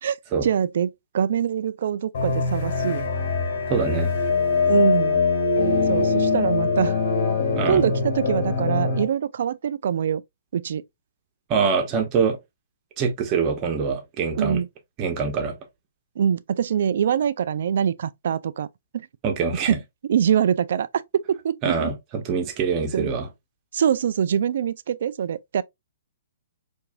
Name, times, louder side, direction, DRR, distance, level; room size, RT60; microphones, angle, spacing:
voice 1, 0.0-3.1 4.7-5.2 5.9-7.0 7.7-10.2 10.5-10.8 14.3-14.7 16.2-18.7 18.9-19.1 19.7-19.8 20.1-21.9 22.9-23.1 23.7-25.6, right 8 dB, 65° right, 0.3 m, -24 dB
sound 1, 2.1-9.0, left 4 dB, 55° left, 1.7 m, -22 dB
voice 2, 3.7-4.1 7.5-7.8 11.5-12.4 13.0-14.6 15.0-15.5 19.2-19.8 21.6-23.3, right 5 dB, 30° right, 1.0 m, -24 dB
4.7 x 2.6 x 2.2 m
hypercardioid pair, 140°, 0 cm